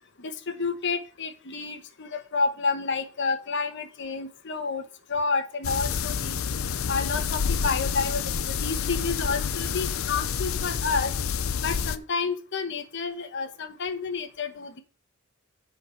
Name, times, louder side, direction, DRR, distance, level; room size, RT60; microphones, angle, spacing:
voice 1, 0.2-4.8 5.1-6.4 6.9-11.1 11.6-14.8, left 4 dB, 60° left, 8 dB, 1.1 m, -30 dB
sound 1, 5.6-12.0, left 6 dB, 80° left, 0.6 m, -28 dB
7.7 x 4.8 x 7.0 m, 0.37 s
head